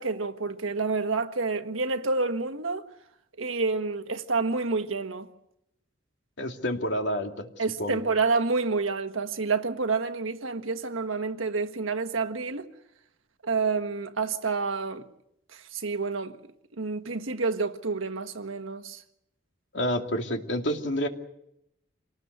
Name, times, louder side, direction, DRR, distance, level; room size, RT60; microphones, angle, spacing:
voice 1, 0.0-2.8 3.4-5.3 7.6-12.7 13.4-15.1 15.5-16.4 16.7-19.0, right 4 dB, 85° right, 1.4 m, -28 dB
voice 2, 6.4-7.5 7.8-8.0 19.7-21.1, equal, 65° left, 2.5 m, -28 dB
27.5 x 19.0 x 8.1 m
head